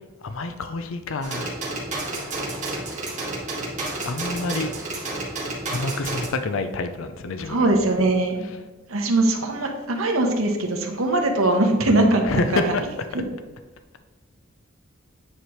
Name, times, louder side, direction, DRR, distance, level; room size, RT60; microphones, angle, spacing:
voice 1, 0.2-1.6 4.0-4.7 5.7-7.7 11.9-12.8, left 3 dB, 70° left, 8 dB, 0.5 m, -28 dB
sound 1, 1.2-6.3, right 2 dB, 35° right, 1.8 m, -30 dB
voice 2, 7.5-8.5 8.9-12.2 12.5-12.7 13.1-13.2, right 2 dB, 85° right, 2 dB, 1.1 m, -21 dB
9.2 x 4.8 x 3.1 m, 1.2 s
head